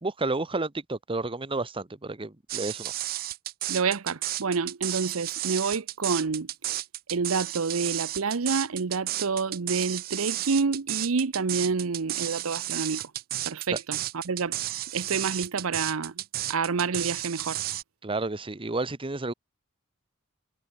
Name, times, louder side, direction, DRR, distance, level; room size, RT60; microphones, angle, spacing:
voice 1, 0.0-2.9 18.0-19.3, right 2 dB, 25° right, 1.0 m, -31 dB
sound 1, 2.5-17.8, right 15 dB, 45° right, 0.4 m, -32 dB
voice 2, 3.7-6.5 7.1-13.0 13.4-14.5 14.9-16.2 16.5-17.6, right 5 dB, 75° right, 0.7 m, -28 dB
head